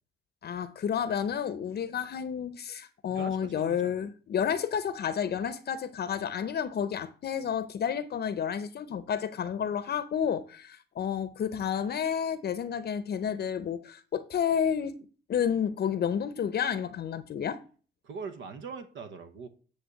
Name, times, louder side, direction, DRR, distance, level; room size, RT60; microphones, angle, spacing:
voice 1, 0.4-15.0 15.3-17.6, left 8 dB, 55° left, 0.7 m, -30 dB
voice 2, 3.1-4.1 18.0-19.5, right 5 dB, 70° right, 1.0 m, -42 dB
9.4 x 3.5 x 6.4 m
cardioid pair, 90°, 20 cm